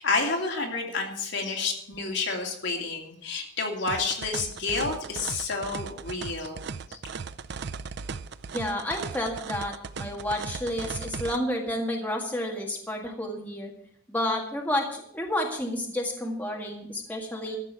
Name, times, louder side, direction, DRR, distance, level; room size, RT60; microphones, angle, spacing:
voice 1, 0.0-6.6 6.9-7.0, left 4 dB, 60° left, 1 dB, 2.7 m, -30 dB
sound 1, 3.9-11.4, right 5 dB, 55° right, 0.5 m, -37 dB
voice 2, 8.5-13.7 14.1-17.6, left 1 dB, 10° left, 0 dB, 1.9 m, -30 dB
14.0 x 6.2 x 8.9 m, 0.68 s
head